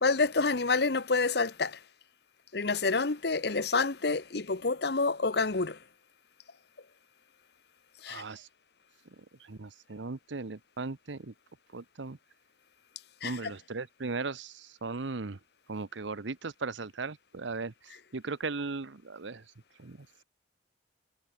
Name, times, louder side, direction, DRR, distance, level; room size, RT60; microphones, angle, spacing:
voice 1, 0.0-1.8 2.5-5.8 8.0-8.2 13.2-13.5, left 3 dB, 60° left, 1.0 m, -28 dB
voice 2, 8.1-8.5 9.4-11.3 11.7-12.2 13.2-15.4 15.7-19.4 19.8-20.2, right 3 dB, 80° right, 0.9 m, -38 dB
head